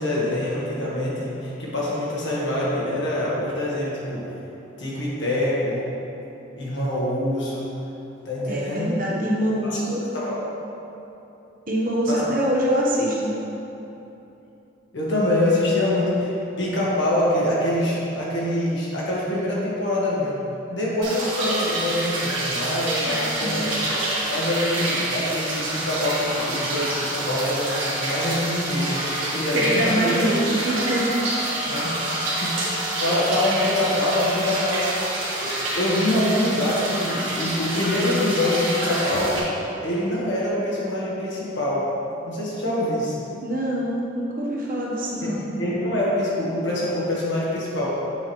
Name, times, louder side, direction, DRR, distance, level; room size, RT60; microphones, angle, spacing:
voice 1, 0.0-4.3 4.8-5.8 6.5-7.7 8.2-8.9 9.6-9.8 10.1-10.4 12.1-12.3 14.9-20.4 20.7-23.8 24.3-30.1 31.7-31.9 32.4-34.9 35.4-39.5 39.8-41.9 42.2-43.1 45.2-45.3 45.6-47.9, left 1 dB, 65° left, -6 dB, 1.5 m, -25 dB
voice 2, 8.5-10.0 11.7-13.4 23.1-23.7 29.6-31.2 43.4-45.4, right 1 dB, 45° right, -4 dB, 1.0 m, -24 dB
sound 1, 21.0-39.4, right 1 dB, 80° right, 1.5 m, -27 dB
7.5 x 5.8 x 3.2 m, 3.0 s
head